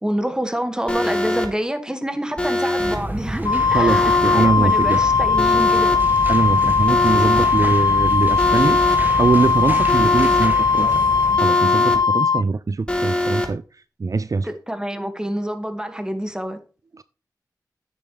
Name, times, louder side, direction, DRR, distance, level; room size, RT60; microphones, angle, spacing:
voice 1, 0.0-5.9 7.6-7.7 14.4-16.6, equal, 10° right, 2.0 m, -27 dB
Alarm, 0.9-1.5 2.4-3.0 3.9-4.5 5.4-6.0 6.9-7.5 8.4-9.0 9.9-10.5 11.4-12.0 12.9-13.5, left 1 dB, 15° left, 2.8 m, -23 dB
sound 1, 2.8-11.4, right 1 dB, 25° right, 2.0 m, -29 dB
Wind instrument woodwind instrument, 3.5-12.4, left 5 dB, 70° left, 0.4 m, -18 dB
voice 2, 3.7-5.0 6.3-8.8 9.2-10.9 11.4-13.6 14.0-14.5 17.0-17.1, right 4 dB, 55° right, 0.4 m, -22 dB
11.0 x 9.1 x 3.4 m
cardioid pair, 45°, 7 cm